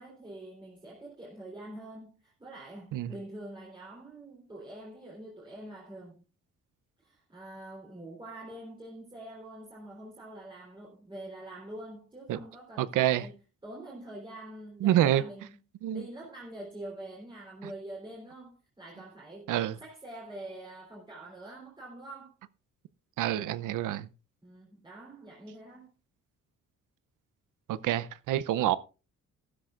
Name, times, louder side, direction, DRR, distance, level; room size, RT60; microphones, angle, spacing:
voice 1, 0.0-6.2 7.0-15.6 15.9-19.5 19.8-22.3 24.4-25.9, right 1 dB, 15° right, 3.5 m, -45 dB
voice 2, 12.8-13.3 14.8-15.2 15.8-16.0 19.5-19.8 23.2-24.1 27.7-28.8, right 12 dB, 90° right, 0.7 m, -27 dB
14.5 x 12.5 x 2.5 m
cardioid pair, 145°, 30 cm